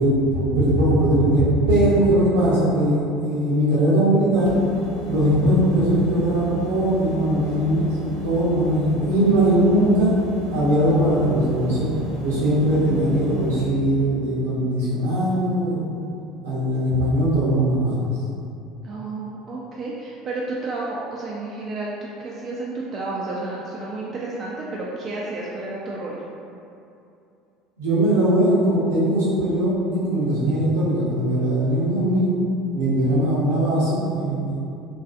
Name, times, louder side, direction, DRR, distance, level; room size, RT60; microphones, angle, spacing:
voice 1, 0.0-4.5 5.0-7.9 8.2-10.1 10.5-11.9 12.2-16.1 16.4-18.1 27.8-32.3 32.7-34.6, right 1 dB, 75° right, -8 dB, 0.7 m, -20 dB
sound 1, 4.4-13.6, left 1 dB, 75° left, 0.5 m, -32 dB
voice 2, 18.8-21.9 22.2-26.2 32.9-33.2, right 2 dB, 40° right, -5 dB, 0.3 m, -31 dB
2.5 x 2.3 x 2.4 m, 2.6 s
hypercardioid pair, 65°, 0 cm